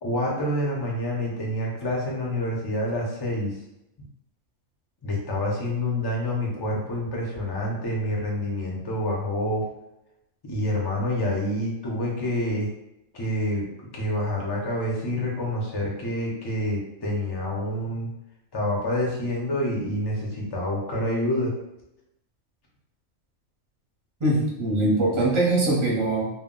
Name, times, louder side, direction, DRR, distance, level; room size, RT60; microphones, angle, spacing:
voice 1, 0.0-3.5 5.0-9.7 10.4-12.7 13.1-13.7 13.9-18.1 18.5-21.5, left 1 dB, 30° left, -2 dB, 0.5 m, -27 dB
voice 2, 24.2-26.3, right 2 dB, 30° right, -5 dB, 0.7 m, -22 dB
2.2 x 2.1 x 3.7 m, 0.85 s
omnidirectional pair, 1.3 m